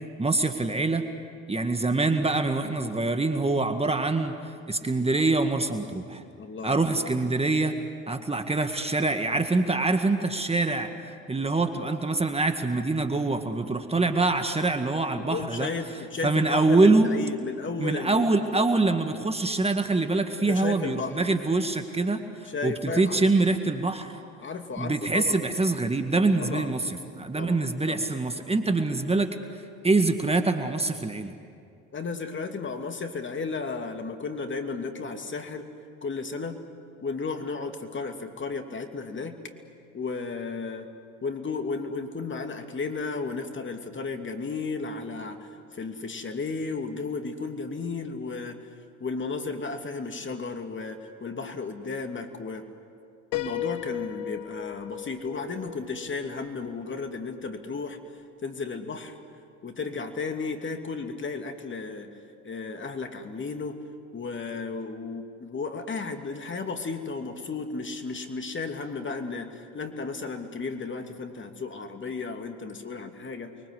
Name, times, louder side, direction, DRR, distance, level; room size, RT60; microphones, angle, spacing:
voice 1, 0.2-1.0 1.5-6.2 6.6-7.7 8.1-10.9 11.3-15.7 16.2-17.1 17.8-24.2 24.8-29.3 29.8-31.3, right 3 dB, 15° right, 6 dB, 2.0 m, -25 dB
voice 2, 6.4-6.8 7.1-7.2 15.2-18.5 20.5-21.2 22.5-23.3 24.4-25.5 26.4-26.7 27.3-28.1 31.9-35.7 36.0-36.6 37.0-39.4 39.9-40.9 41.2-48.6 49.0-52.6 53.3-58.0 58.4-59.1 59.6-62.1 62.4-63.8 64.1-73.5, left 4 dB, 35° left, 6 dB, 2.7 m, -34 dB
Piano, 53.3-57.1, left 12 dB, 80° left, 1.0 m, -36 dB
29.5 x 23.0 x 8.3 m, 2.4 s
hypercardioid pair, 65°, 35 cm